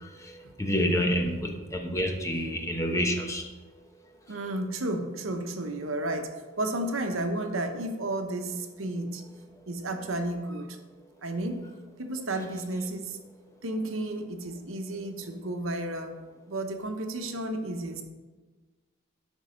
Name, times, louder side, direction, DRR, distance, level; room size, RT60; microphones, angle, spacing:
voice 1, 0.0-3.4, equal, 15° left, 3 dB, 0.9 m, -28 dB
voice 2, 4.3-6.3 6.6-9.2 9.7-10.8 11.2-11.7 12.0-13.2 13.6-16.1 16.5-18.0, right 1 dB, 80° right, 6 dB, 1.0 m, -32 dB
12.0 x 5.3 x 5.1 m, 1.3 s
head